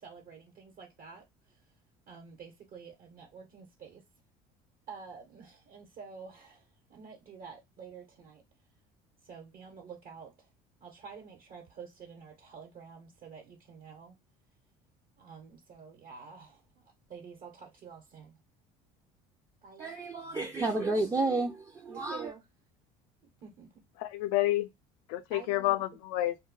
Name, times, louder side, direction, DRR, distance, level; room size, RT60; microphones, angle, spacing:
voice 1, 0.0-1.7 2.1-4.0 4.9-8.4 9.2-10.5 10.8-14.1 15.2-18.4 19.6-20.0 21.9-22.4 23.4-23.7 25.3-25.8, right 6 dB, 60° right, 1.1 m, -49 dB
voice 2, 19.8-22.3, right 2 dB, 20° right, 0.5 m, -31 dB
voice 3, 24.0-24.7 25.1-26.4, left 16 dB, 75° left, 0.4 m, -29 dB
2.2 x 2.2 x 3.7 m
supercardioid pair, 80°, 18 cm